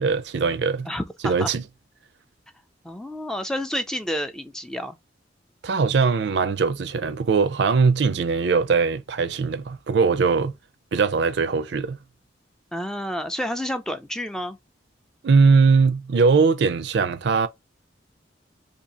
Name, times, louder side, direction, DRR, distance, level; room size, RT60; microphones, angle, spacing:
voice 1, 0.0-0.9 1.2-1.6 5.6-10.5 10.9-12.0 15.2-17.5, right 4 dB, 65° right, 0.4 m, -20 dB
voice 2, 0.9-1.5 2.8-5.0 12.7-14.6, equal, 5° left, 0.3 m, -29 dB
2.7 x 2.7 x 3.9 m
head